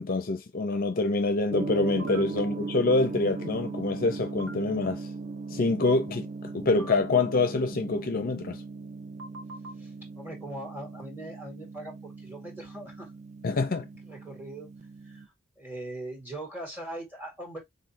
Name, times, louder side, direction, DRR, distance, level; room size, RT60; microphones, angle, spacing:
voice 1, 0.0-5.1 5.5-8.6 13.4-13.9, left 3 dB, 45° left, 0.5 m, -26 dB
Gong, 1.5-15.3, right 3 dB, 35° right, 0.5 m, -39 dB
sound 1, 2.0-2.2 4.4-4.5 6.8-6.9 9.2-9.7, right 1 dB, 80° right, 0.8 m, -42 dB
voice 2, 9.8-13.1 14.1-14.7 15.0-15.3 15.6-17.6, right 1 dB, 10° right, 1.8 m, -41 dB
4.0 x 3.1 x 2.8 m
head